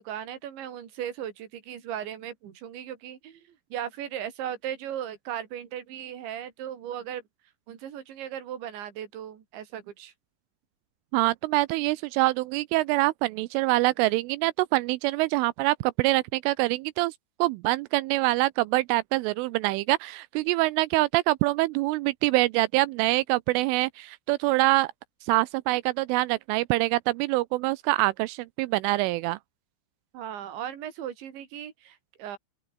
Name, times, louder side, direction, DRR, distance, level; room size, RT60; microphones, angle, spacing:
voice 1, 0.0-7.2 7.7-10.1 30.1-32.4, right 10 dB, 65° right, 5.3 m, -37 dB
voice 2, 11.1-17.1 17.4-24.9 25.3-29.4, right 20 dB, 85° right, 3.0 m, -25 dB
open air
omnidirectional pair, 5.8 m